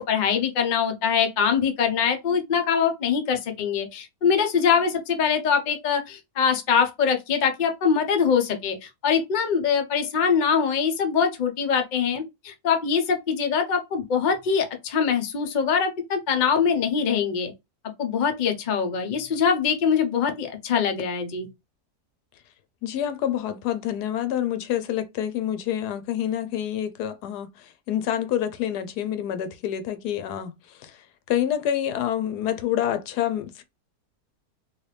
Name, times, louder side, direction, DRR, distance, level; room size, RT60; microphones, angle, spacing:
voice 1, 0.0-17.5 18.0-21.5, left 6 dB, 50° left, 0.5 m, -23 dB
voice 2, 22.8-33.6, left 10 dB, 85° left, 1.2 m, -27 dB
3.1 x 2.7 x 3.2 m
omnidirectional pair, 1.7 m